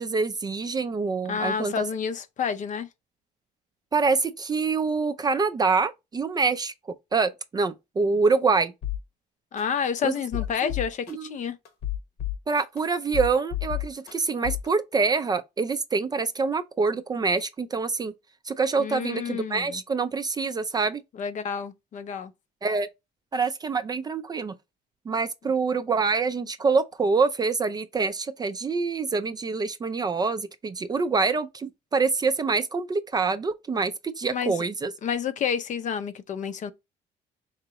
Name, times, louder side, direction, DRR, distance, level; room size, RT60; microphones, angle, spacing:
voice 1, 0.0-1.8 3.9-6.7 7.1-8.7 10.0-10.1 10.6-10.7 11.1-11.3 12.5-18.1 18.5-21.0 22.6-22.9 23.3-24.5 25.1-34.9, right 4 dB, 25° right, 0.4 m, -25 dB
voice 2, 1.3-2.9 9.5-11.6 18.8-19.8 21.1-22.3 34.3-34.6 35.0-36.7, left 7 dB, 45° left, 0.6 m, -29 dB
sound 1, 8.8-9.0 9.6-9.7 10.2-11.1 11.7-12.8 13.1-14.1 14.4-14.7, left 13 dB, 70° left, 1.0 m, -30 dB
4.5 x 2.9 x 2.9 m
cardioid pair, 110°, 17 cm